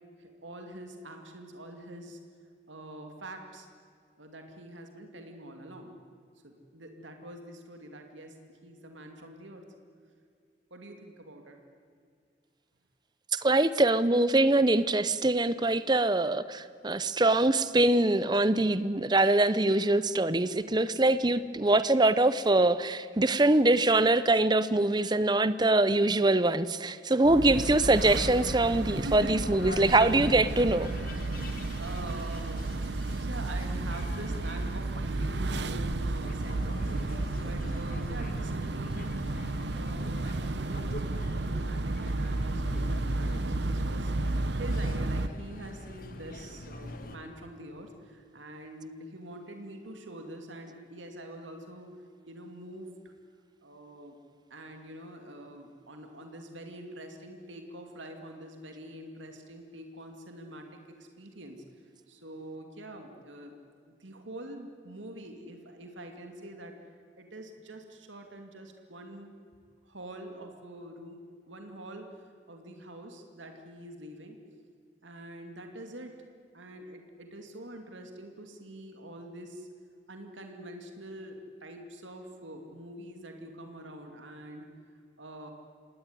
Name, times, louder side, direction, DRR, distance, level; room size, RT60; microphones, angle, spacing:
voice 1, 0.2-2.2 2.7-3.7 4.2-6.0 6.4-9.6 10.7-11.6 29.0-29.6 31.3-32.8 33.1-39.0 39.7-44.1 44.5-51.9 52.3-53.1 53.6-54.1 54.5-61.6 62.1-63.5 63.8-69.4 69.9-74.4 75.0-76.1 76.5-79.7 80.1-84.7 85.2-85.5, right 1 dB, 85° right, 4 dB, 2.5 m, -45 dB
voice 2, 13.3-30.9, right 2 dB, 20° right, 15 dB, 0.7 m, -24 dB
sound 1, 27.2-45.3, right 2 dB, 65° right, 0.9 m, -32 dB
sound 2, 27.9-47.2, left 1 dB, 50° left, 1.7 m, -44 dB
26.5 x 18.5 x 9.8 m, 2.2 s
head